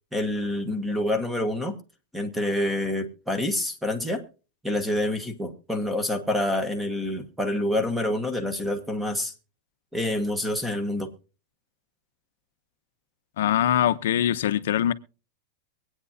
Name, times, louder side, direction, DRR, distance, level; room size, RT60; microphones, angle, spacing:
voice 1, 0.1-1.8 2.1-4.2 4.6-9.3 9.9-11.1, left 1 dB, 5° right, 1.1 m, -27 dB
voice 2, 13.4-14.9, left 11 dB, 70° left, 0.7 m, -23 dB
23.5 x 8.9 x 2.7 m
supercardioid pair, 165°, 0 cm